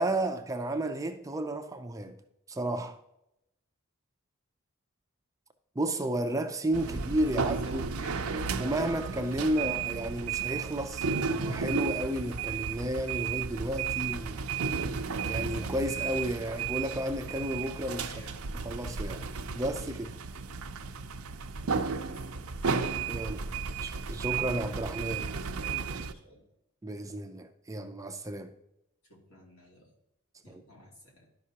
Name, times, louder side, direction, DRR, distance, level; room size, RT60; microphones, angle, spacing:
voice 1, 0.0-2.2 2.5-3.0 5.8-7.8 8.6-14.4 15.3-18.1 18.5-19.3 19.5-20.1 23.1-23.5 23.8-25.3 26.8-28.5 30.5-30.6, right 1 dB, 15° right, 0.5 m, -32 dB
sound 1, 6.7-26.1, right 5 dB, 80° right, 0.6 m, -33 dB
voice 2, 7.3-9.8 18.0-18.4 21.8-22.4 23.6-23.7 24.8-26.4 29.0-29.9 30.4-31.3, equal, 70° left, 2.7 m, -51 dB
12.0 x 5.3 x 2.8 m
head